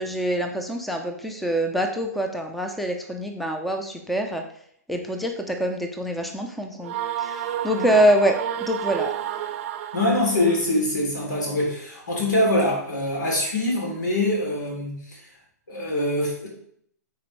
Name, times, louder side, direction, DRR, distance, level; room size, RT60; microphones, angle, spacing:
voice 1, 0.0-4.4 4.9-9.1, right 1 dB, ahead, 5 dB, 0.6 m, -25 dB
sound 1, 6.8-10.7, right 11 dB, 45° right, 0.6 m, -31 dB
voice 2, 9.9-15.2 15.7-16.5, left 1 dB, 85° left, -2 dB, 3.1 m, -24 dB
9.4 x 4.3 x 3.2 m, 0.66 s
hypercardioid pair, 130°, 10 cm